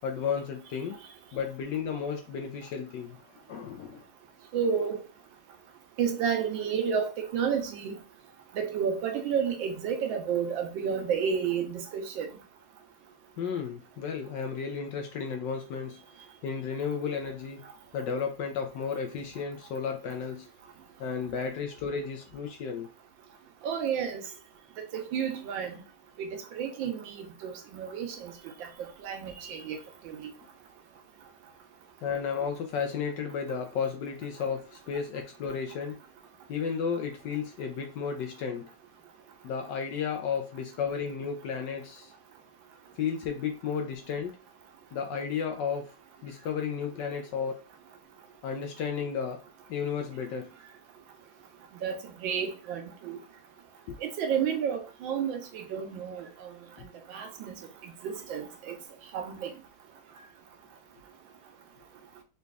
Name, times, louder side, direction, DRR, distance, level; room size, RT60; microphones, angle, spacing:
voice 1, 0.0-1.0 1.3-3.2 3.5-4.1 13.4-16.0 16.4-17.6 17.9-20.5 21.0-22.9 32.0-36.0 36.5-38.7 39.4-42.1 43.0-44.3 44.9-45.9 46.2-47.7 48.4-49.4 49.7-50.5 53.9-54.0, left 6 dB, 70° left, 1.1 m, -33 dB
voice 2, 4.5-5.0 6.0-8.0 8.5-12.3 23.6-24.2 24.9-25.8 26.2-28.3 29.0-29.8 30.0-30.3 51.8-53.2 54.0-56.5 57.1-57.6 58.0-58.8 59.1-59.5, right 7 dB, 70° right, 1.4 m, -31 dB
4.0 x 3.3 x 2.3 m
omnidirectional pair, 2.3 m